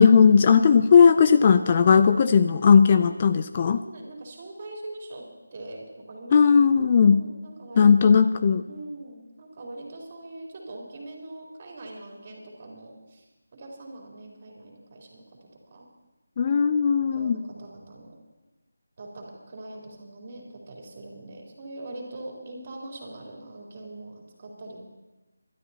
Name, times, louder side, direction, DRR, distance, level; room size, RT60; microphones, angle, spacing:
voice 1, 0.0-3.8 6.3-7.3 7.8-8.6 16.4-17.4, left 6 dB, 30° left, 10 dB, 0.4 m, -17 dB
voice 2, 3.8-5.2 5.5-6.6 7.1-8.2 8.7-13.2 13.5-15.9 17.0-18.1 19.0-24.8, right 2 dB, 35° right, -2 dB, 3.7 m, -42 dB
26.0 x 12.5 x 2.9 m, 1.1 s
figure-of-eight pair, 165°, 0 cm